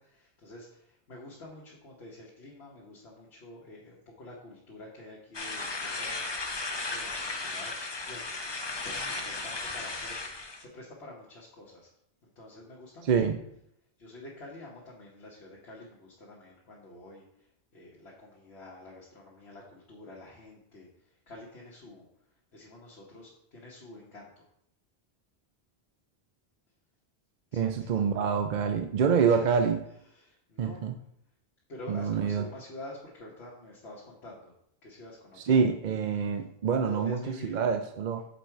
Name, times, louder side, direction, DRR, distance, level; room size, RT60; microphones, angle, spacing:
voice 1, 0.0-6.3 6.9-8.3 8.8-11.9 12.2-13.1 14.0-22.1 22.5-24.4 27.5-28.1 29.2-29.7 30.1-30.9 31.7-34.5 34.8-35.5 36.1-36.3 36.8-37.6, left 2 dB, 80° left, -4 dB, 1.5 m, -48 dB
sound 1, 5.3-10.6, left 3 dB, 30° left, 0.6 m, -35 dB
voice 2, 27.5-29.8 30.6-30.9 31.9-32.4 35.5-38.2, right 6 dB, 55° right, 6 dB, 0.6 m, -26 dB
6.8 x 4.6 x 4.5 m, 0.75 s
omnidirectional pair, 1.1 m